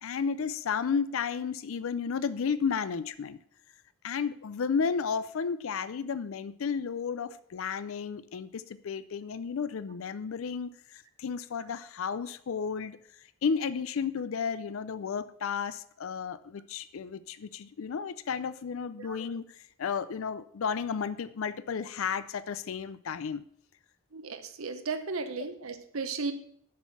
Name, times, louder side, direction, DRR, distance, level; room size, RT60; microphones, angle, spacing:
voice 1, 0.0-3.4 4.0-23.4, left 6 dB, 70° left, 14 dB, 0.4 m, -33 dB
voice 2, 24.1-26.3, right 4 dB, 75° right, 8 dB, 0.9 m, -35 dB
7.3 x 6.3 x 7.0 m, 0.65 s
head